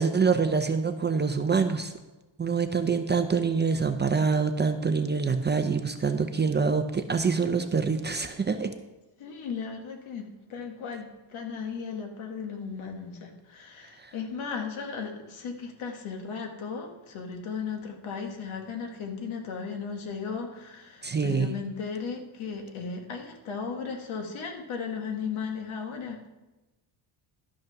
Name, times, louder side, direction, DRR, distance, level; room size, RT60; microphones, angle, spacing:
voice 1, 0.0-1.9 2.4-8.7 14.0-14.1 21.0-21.5, right 5 dB, 20° right, 7 dB, 0.6 m, -25 dB
voice 2, 9.2-26.3, left 5 dB, 70° left, 4 dB, 1.9 m, -36 dB
12.0 x 6.3 x 5.8 m, 1.1 s
cardioid pair, 120°, 50 cm